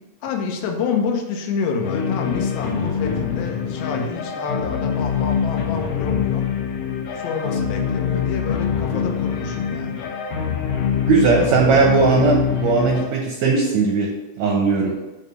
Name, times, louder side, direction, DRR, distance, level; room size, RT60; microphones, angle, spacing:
voice 1, 0.2-6.6 7.1-10.1, left 5 dB, 90° left, 3 dB, 2.8 m, -28 dB
sound 1, 1.8-13.1, left 7 dB, 70° left, 2.2 m, -24 dB
voice 2, 11.1-15.0, right 4 dB, 75° right, 0 dB, 1.6 m, -18 dB
7.2 x 3.3 x 6.1 m, 1.1 s
omnidirectional pair, 4.2 m